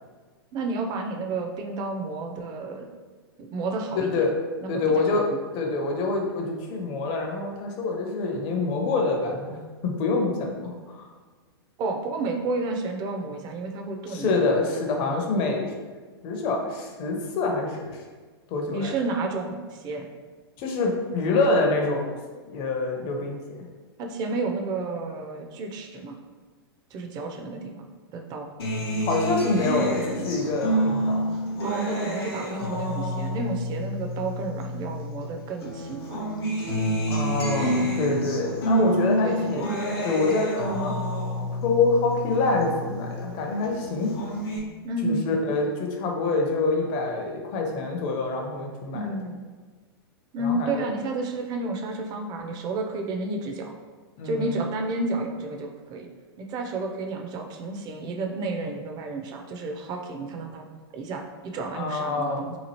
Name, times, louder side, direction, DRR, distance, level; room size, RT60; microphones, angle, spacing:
voice 1, 0.5-2.8 3.4-4.1 4.6-5.4 11.8-14.3 18.7-20.1 24.0-26.2 26.9-27.9 28.1-28.5 31.6-36.2 39.2-39.7 44.8-45.4 48.9-49.4 50.3-53.7 54.2-56.1 56.4-60.7 60.9-62.5, right 2 dB, 30° right, 3 dB, 0.4 m, -31 dB
voice 2, 3.9-4.3 4.7-5.3 5.5-11.1 14.1-15.7 16.2-18.0 18.5-18.9 20.6-22.1 22.5-23.6 29.0-31.3 37.1-39.6 40.0-41.0 41.6-44.2 45.0-49.0 50.4-50.7 54.2-54.5 61.7-62.6, left 3 dB, 40° left, 1 dB, 0.6 m, -26 dB
Acoustic guitar, 28.6-35.2 35.6-43.2 43.6-44.6, equal, 70° left, 0.8 m, -28 dB
2.9 x 2.4 x 2.8 m, 1.4 s
hypercardioid pair, 110°, 13 cm